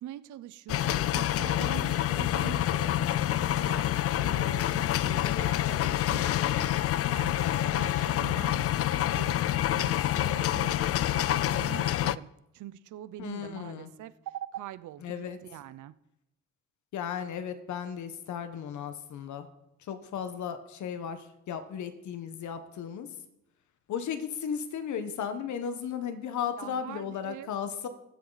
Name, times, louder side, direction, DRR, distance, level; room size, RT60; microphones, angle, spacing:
voice 1, 0.0-8.6 8.9-12.3 12.5-15.9 26.6-27.5, right 13 dB, 75° right, 16 dB, 0.7 m, -44 dB
sound 1, 0.7-12.2, left 13 dB, 50° left, 0.4 m, -27 dB
voice 2, 7.4-7.9 13.2-13.9 15.0-15.4 16.9-19.5 19.9-23.1 23.9-27.9, left 8 dB, 70° left, 9 dB, 1.3 m, -35 dB
19.0 x 7.7 x 4.1 m, 0.88 s
cardioid pair, 90°, 30 cm